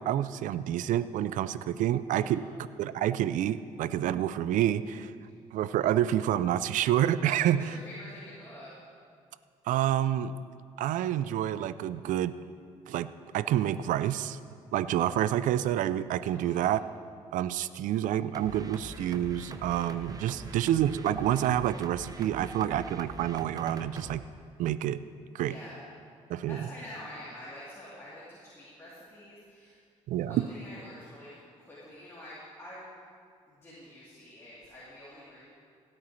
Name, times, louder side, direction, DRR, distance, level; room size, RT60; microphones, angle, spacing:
voice 1, 0.0-2.4 2.8-5.1 5.5-7.7 9.7-10.3 10.8-12.3 12.9-14.4 14.7-16.8 17.3-24.2 24.6-25.0 25.3-25.6 26.3-26.6 30.1-30.5, right 11 dB, 75° right, 15 dB, 0.4 m, -28 dB
voice 2, 2.1-2.5 7.5-8.7 16.3-16.7 20.3-20.7 25.4-25.8 26.4-29.8 30.2-31.3 31.6-32.9 33.5-35.4, left 1 dB, 20° left, -10 dB, 3.2 m, -47 dB
sound 1, 18.3-24.2, right 3 dB, 30° right, 0.8 m, -44 dB
16.5 x 8.8 x 3.2 m, 2.3 s
supercardioid pair, 70°, 13 cm